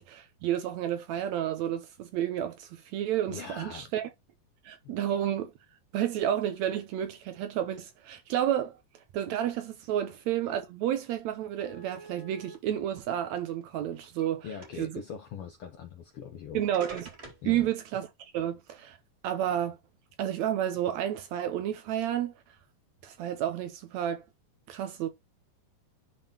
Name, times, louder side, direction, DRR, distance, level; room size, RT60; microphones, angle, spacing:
voice 1, 0.0-4.1 4.7-5.5 5.9-8.8 9.1-14.5 14.8-15.0 16.5-17.1 17.5-19.0 19.2-19.8 20.2-22.3 23.0-24.3 24.7-25.1, right 11 dB, 75° right, 1.7 m, -31 dB
voice 2, 3.3-3.9 14.4-16.6 17.4-17.7, left 7 dB, 85° left, 1.2 m, -42 dB
sound 1, 11.0-11.1 11.6-12.6 13.4-14.3 14.6-15.0 16.1-16.2 16.7-17.5, right 2 dB, 25° right, 1.6 m, -47 dB
10.5 x 3.7 x 2.8 m
omnidirectional pair, 3.9 m